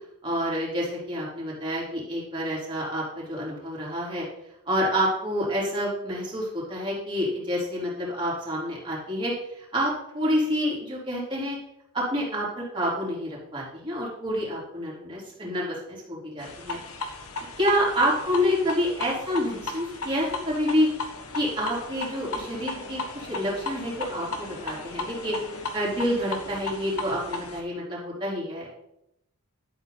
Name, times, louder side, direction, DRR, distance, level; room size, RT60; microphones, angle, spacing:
voice 1, 0.2-4.2 4.7-11.6 11.9-16.8 17.6-20.9 21.3-28.7, equal, 20° right, -6 dB, 3.6 m, -28 dB
sound 1, 16.4-27.6, left 3 dB, 70° left, 1.5 m, -36 dB
11.5 x 8.1 x 4.1 m, 0.80 s
head